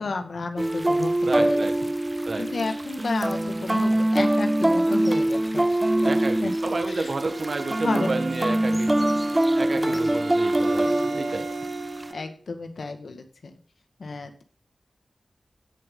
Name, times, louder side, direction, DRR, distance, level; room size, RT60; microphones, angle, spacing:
voice 1, 0.0-1.1 1.4-1.9 2.4-6.2 6.4-6.5 6.9-7.1 7.8-8.1 8.4-9.4 9.7-10.1 10.8-10.9 12.1-13.6 14.0-14.4, left 3 dB, 75° left, 6 dB, 2.0 m, -33 dB
sound 1, 0.6-12.1, right 1 dB, 20° right, 0.5 m, -24 dB
voice 2, 1.3-1.7 2.3-2.5 6.0-8.9 9.5-11.4, right 3 dB, 55° right, 5 dB, 1.6 m, -30 dB
Bowed string instrument, 6.8-12.3, right 5 dB, 80° right, 1.2 m, -38 dB
16.5 x 7.4 x 4.0 m, 0.42 s
wide cardioid pair, 95°, 0 cm